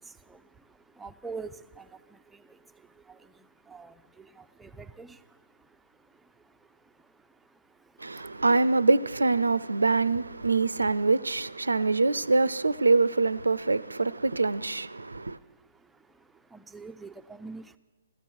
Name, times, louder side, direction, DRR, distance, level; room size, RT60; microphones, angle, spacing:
voice 1, 0.0-8.4 14.9-17.8, right 4 dB, 5° right, 0.5 m, -48 dB
voice 2, 8.0-15.4, right 3 dB, 80° right, 0.5 m, -24 dB
16.5 x 13.0 x 6.1 m
figure-of-eight pair, 125°, 0 cm